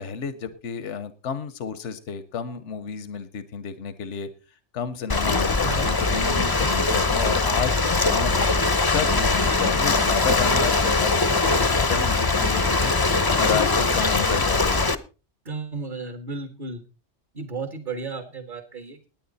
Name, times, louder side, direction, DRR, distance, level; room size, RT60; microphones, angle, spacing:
voice 1, 0.0-4.3 4.7-8.5 8.9-12.9 13.4-14.9, left 7 dB, 80° left, 13 dB, 1.2 m, -31 dB
Ocean, 5.1-14.9, left 3 dB, 25° left, 0.7 m, -21 dB
voice 2, 15.4-16.8 17.3-19.1, right 4 dB, 45° right, 8 dB, 1.6 m, -33 dB
19.5 x 9.3 x 4.1 m, 0.34 s
omnidirectional pair, 1.2 m